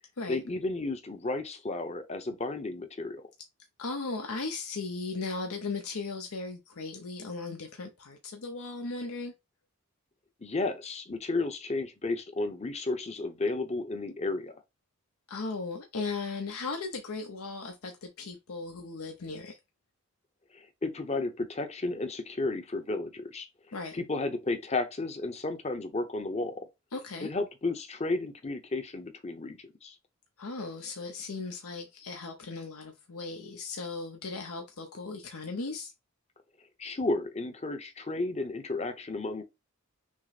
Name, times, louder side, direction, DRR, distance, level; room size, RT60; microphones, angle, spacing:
voice 1, 0.3-3.3 10.4-14.6 20.5-23.5 23.9-26.7 27.2-29.9 36.8-39.4, left 2 dB, 30° left, 0.8 m, -33 dB
voice 2, 3.8-9.3 15.3-19.6 23.7-24.0 26.9-27.3 30.4-35.9, left 3 dB, 80° left, 0.8 m, -37 dB
6.1 x 2.1 x 4.1 m
head